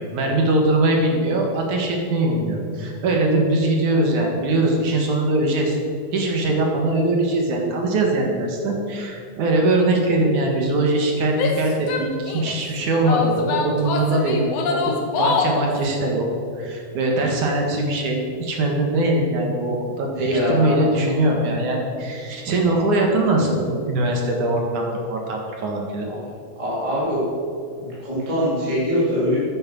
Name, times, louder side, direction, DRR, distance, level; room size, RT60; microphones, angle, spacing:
voice 1, 0.0-5.8 6.1-14.4 14.7-16.2 16.5-26.1, right 2 dB, 60° right, 1 dB, 2.9 m, -21 dB
Female speech woman speaking / Yell, 11.3-12.6 13.0-15.7, left 5 dB, 60° left, 1.8 m, -25 dB
voice 2, 20.2-20.7 26.6-27.2 27.8-29.4, equal, 10° right, -9 dB, 3.6 m, -23 dB
13.0 x 10.0 x 6.2 m, 2.4 s
omnidirectional pair, 4.3 m